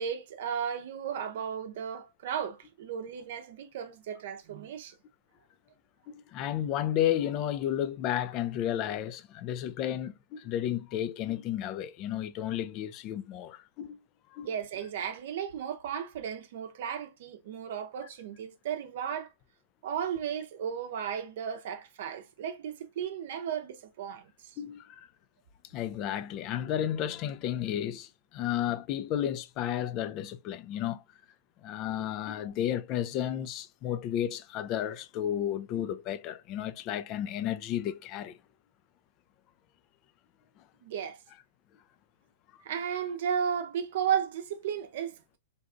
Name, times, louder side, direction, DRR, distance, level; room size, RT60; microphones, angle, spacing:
voice 1, 0.0-4.9 14.4-19.3 19.8-24.6 40.8-41.2 42.6-45.4, right 8 dB, 60° right, 0.6 m, -34 dB
voice 2, 6.1-14.0 14.3-14.5 24.6-25.1 25.7-31.0 31.6-38.4, left 11 dB, 40° left, 0.3 m, -32 dB
3.9 x 2.4 x 2.4 m
hypercardioid pair, 110°, 0 cm